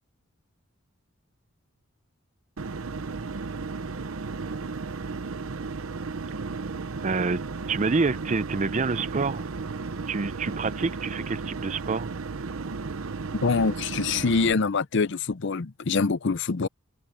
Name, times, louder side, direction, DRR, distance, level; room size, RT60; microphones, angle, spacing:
sound 1, 2.6-14.5, right 4 dB, 80° right, 0.8 m, -34 dB
voice 1, 7.0-7.4 7.7-9.4 10.1-12.1, right 4 dB, 35° right, 0.5 m, -27 dB
voice 2, 13.4-16.7, left 4 dB, 60° left, 0.6 m, -25 dB
open air
head